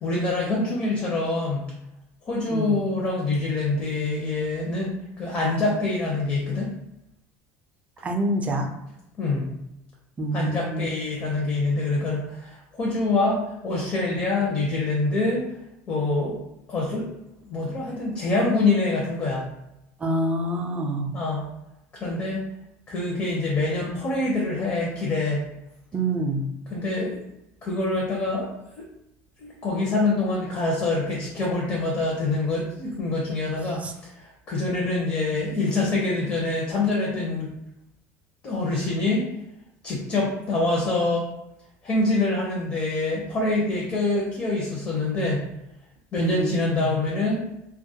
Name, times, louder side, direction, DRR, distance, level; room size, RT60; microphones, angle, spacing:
voice 1, 0.0-1.7 2.2-6.7 9.2-9.5 10.3-15.5 15.9-16.4 16.7-17.1 17.5-19.5 21.1-21.4 21.9-22.4 22.9-25.5 26.7-27.2 27.6-28.5 28.8-28.9 29.4-37.5 38.4-39.3 39.8-41.3 41.8-45.4 46.1-47.4, left 2 dB, 35° left, -3 dB, 0.6 m, -25 dB
voice 2, 8.0-8.7 10.2-10.9 20.0-21.1 25.9-26.5 33.8-33.9 46.2-46.9, right 1 dB, 20° right, 4 dB, 0.3 m, -26 dB
2.2 x 2.1 x 2.7 m, 0.86 s
cardioid pair, 130°, 7 cm